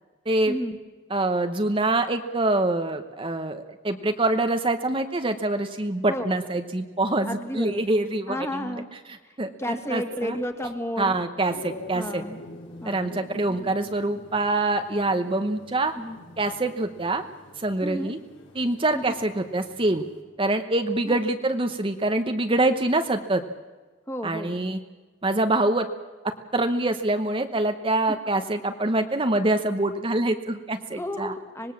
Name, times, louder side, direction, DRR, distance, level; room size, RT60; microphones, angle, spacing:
voice 1, 0.5-0.8 6.1-6.3 7.3-7.9 8.3-8.9 9.2-11.2 11.9-12.4 12.8-13.1 16.0-16.2 17.8-18.1 18.9-19.2 21.0-21.2 24.1-24.5 30.9-31.7, equal, 15° left, 7 dB, 2.0 m, -32 dB
voice 2, 1.1-8.8 9.1-10.4 11.0-12.2 12.8-15.9 16.4-17.2 17.6-18.2 18.5-20.0 20.4-23.4 24.2-24.8 25.2-25.9 26.5-31.3, right 2 dB, 30° right, 7 dB, 1.0 m, -25 dB
sound 1, 11.5-20.2, left 2 dB, 85° left, 6.4 m, -45 dB
25.5 x 19.5 x 7.2 m, 1.3 s
head